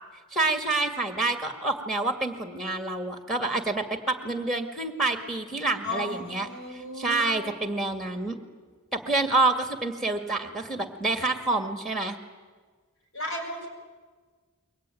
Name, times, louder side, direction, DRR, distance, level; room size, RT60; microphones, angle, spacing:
voice 1, 0.3-8.4 8.9-12.2, right 2 dB, ahead, 6 dB, 2.0 m, -28 dB
voice 2, 5.8-7.5 13.1-13.7, left 1 dB, 65° left, 3 dB, 6.6 m, -35 dB
28.0 x 23.0 x 9.2 m, 1.5 s
head